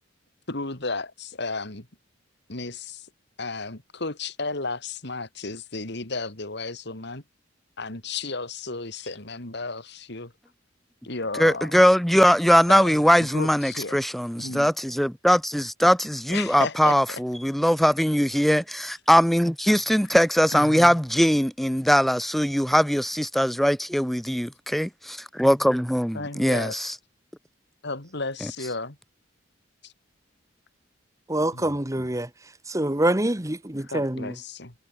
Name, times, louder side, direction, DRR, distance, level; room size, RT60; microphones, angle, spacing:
voice 1, 0.5-1.9 2.5-3.1 3.4-7.2 7.8-10.3 11.0-11.8 12.7-14.0 14.4-14.7 16.3-17.2 20.5-21.0 26.1-26.8 27.8-29.0 29.8-29.9 31.5-32.1 33.8-34.7, left 3 dB, 60° left, 3.0 m, -33 dB
voice 2, 11.4-26.9, equal, ahead, 0.8 m, -21 dB
voice 3, 31.3-32.3 32.7-34.3, right 1 dB, 15° right, 1.4 m, -25 dB
head